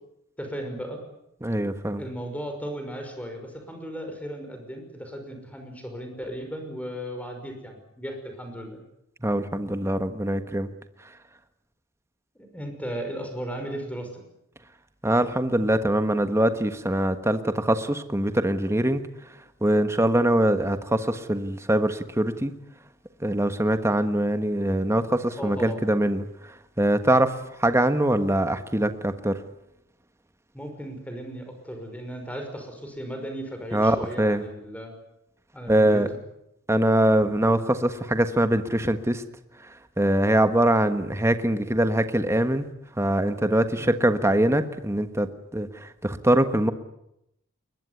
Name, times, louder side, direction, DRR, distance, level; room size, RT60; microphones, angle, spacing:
voice 1, 0.4-1.0 2.0-8.8 12.4-14.2 25.4-25.9 30.5-34.9 35.5-36.0 43.8-44.0, equal, 5° left, 5 dB, 5.7 m, -36 dB
voice 2, 1.4-2.0 9.2-10.7 15.0-19.0 19.6-22.5 23.2-26.2 26.8-27.3 27.6-29.4 33.7-34.4 35.7-36.1 36.7-39.2 40.0-42.7 43.0-46.7, right 1 dB, 15° right, 9 dB, 1.4 m, -23 dB
21.5 x 21.0 x 9.6 m, 0.81 s
head